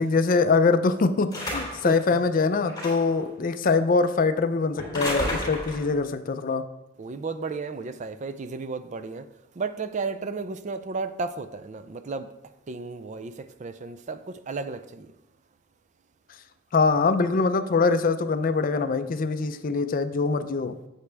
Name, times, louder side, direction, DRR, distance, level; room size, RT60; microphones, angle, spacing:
voice 1, 0.0-6.7 16.7-20.7, left 4 dB, 40° left, 0.4 m, -23 dB
sound 1, 1.3-1.9 2.7-3.2 4.8-5.9, left 1 dB, 20° left, 2.9 m, -32 dB
voice 2, 7.0-9.2 9.6-12.3 12.7-15.1, right 4 dB, 35° right, 0.3 m, -33 dB
8.2 x 8.1 x 3.4 m
head